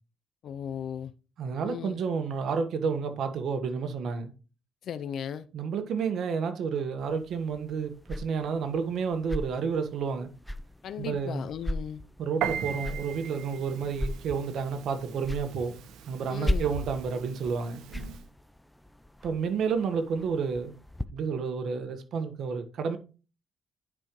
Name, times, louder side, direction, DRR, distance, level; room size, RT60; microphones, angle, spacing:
voice 1, 0.4-1.1 1.6-2.0 4.8-5.5 10.8-12.0 16.3-16.7, left 8 dB, 65° left, 0.6 m, -36 dB
voice 2, 1.4-4.3 5.5-10.3 11.0-11.4 12.2-15.7 16.1-17.8 19.2-20.7 21.1-23.0, right 6 dB, 70° right, 1.3 m, -30 dB
sound 1, 7.0-21.0, left 1 dB, 5° left, 0.5 m, -38 dB
Piano, 12.4-18.2, right 9 dB, 90° right, 1.0 m, -39 dB
9.8 x 5.1 x 3.1 m
cardioid pair, 90°, 0 cm